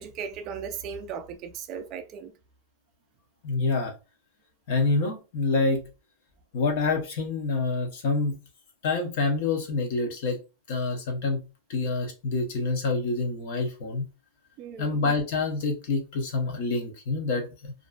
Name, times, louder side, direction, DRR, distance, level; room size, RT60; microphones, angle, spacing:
voice 1, 0.0-2.3 14.6-15.0, right 7 dB, 25° right, 0.3 m, -37 dB
voice 2, 3.4-3.9 4.7-5.9 6.5-8.4 8.8-10.4 10.7-11.4 11.7-14.1 14.8-17.7, left 3 dB, 45° left, 0.6 m, -27 dB
2.4 x 2.2 x 2.3 m
supercardioid pair, 175°, 0 cm